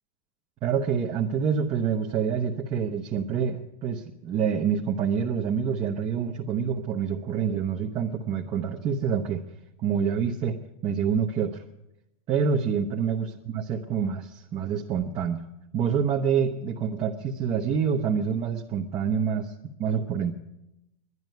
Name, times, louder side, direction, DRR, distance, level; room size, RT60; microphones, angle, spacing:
voice 1, 0.6-9.4 9.8-11.6 12.3-15.4 15.7-19.5 19.8-20.3, right 7 dB, 30° right, 0 dB, 0.9 m, -27 dB
11.0 x 10.5 x 9.3 m, 0.88 s
supercardioid pair, 140°, 18 cm